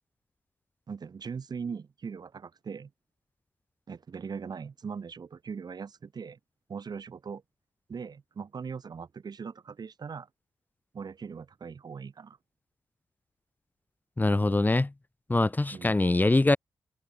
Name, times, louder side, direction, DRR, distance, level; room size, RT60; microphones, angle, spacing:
voice 1, 0.9-2.9 3.9-6.4 6.7-7.4 7.9-10.3 10.9-12.4 15.7-16.0, right 6 dB, 55° right, 5.1 m, -40 dB
voice 2, 14.2-14.9 15.3-16.6, left 2 dB, 20° left, 1.2 m, -23 dB
supercardioid pair, 45°, 8 cm